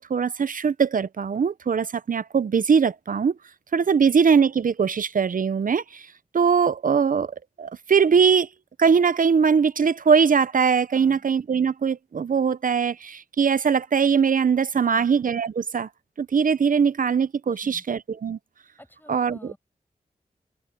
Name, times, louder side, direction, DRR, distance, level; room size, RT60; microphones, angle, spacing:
voice 1, 0.0-3.4 3.7-6.1 6.3-7.3 7.6-8.5 8.8-15.9 16.2-18.4 19.1-19.5, right 6 dB, 60° right, 0.6 m, -21 dB
voice 2, 10.9-11.2 14.7-15.1 17.4-17.8 18.8-19.6, left 1 dB, 10° left, 8.0 m, -49 dB
wide cardioid pair, 100°, 15 cm